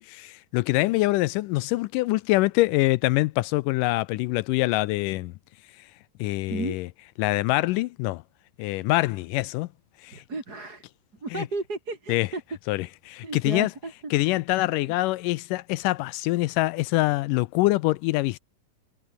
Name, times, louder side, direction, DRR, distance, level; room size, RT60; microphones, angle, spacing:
voice 1, 0.0-5.3 6.2-6.9 7.2-8.2 8.6-9.7 10.0-10.2 11.3-11.5 12.1-12.3 12.7-13.7 14.1-18.4, left 19 dB, 80° left, 2.0 m, -24 dB
voice 2, 10.1-10.8 11.2-12.4 13.2-14.1, right 3 dB, 25° right, 4.1 m, -33 dB
omnidirectional pair, 4.1 m